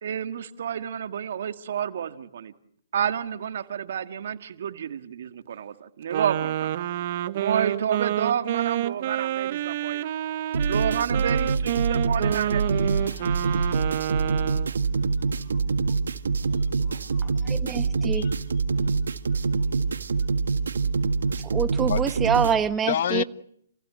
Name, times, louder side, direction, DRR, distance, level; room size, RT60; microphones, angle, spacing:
voice 1, 0.0-2.5 2.9-6.8 7.3-10.1 10.7-12.9, right 8 dB, 60° right, 1.9 m, -30 dB
Wind instrument woodwind instrument, 6.1-14.7, right 12 dB, 45° right, 0.9 m, -28 dB
sound 1, 10.5-22.5, right 4 dB, 80° right, 1.6 m, -25 dB
voice 2, 13.0-13.8 16.9-17.0 18.2-18.3 21.9-22.0 22.9-23.2, left 9 dB, 55° left, 0.9 m, -29 dB
voice 3, 17.4-18.3 21.4-23.2, right 7 dB, 15° right, 1.2 m, -26 dB
28.0 x 16.0 x 7.8 m
hypercardioid pair, 150°, 0 cm